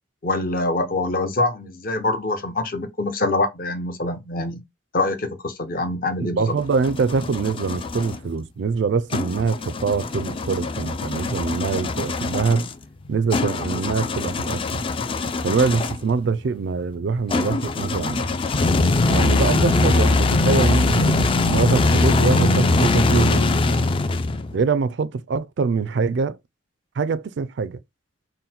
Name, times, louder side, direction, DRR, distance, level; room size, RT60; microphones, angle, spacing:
voice 1, 0.2-4.6 4.9-6.5, left 2 dB, 50° left, 0.7 m, -24 dB
voice 2, 6.2-12.7 13.1-14.8 15.4-18.3 19.1-23.4 24.5-26.4 27.0-27.8, right 5 dB, 65° right, 0.4 m, -24 dB
sound 1, 6.4-8.2 9.1-16.1 17.3-24.6, left 3 dB, 30° left, 0.3 m, -22 dB
3.9 x 2.1 x 4.2 m
head